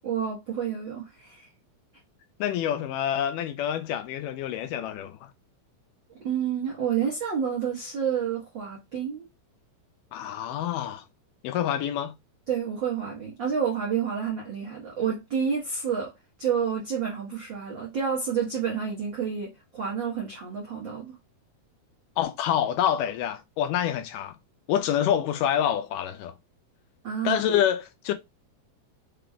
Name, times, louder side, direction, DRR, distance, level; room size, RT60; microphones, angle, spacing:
voice 1, 0.0-1.5 6.2-9.3 12.5-16.1 16.4-21.2 27.0-27.6, right 7 dB, 70° right, 1.1 m, -29 dB
voice 2, 2.4-5.3 10.1-11.1 11.4-12.1 22.2-24.4 24.7-26.3 27.2-28.1, left 10 dB, 80° left, 2.0 m, -27 dB
5.8 x 2.3 x 3.4 m
omnidirectional pair, 4.0 m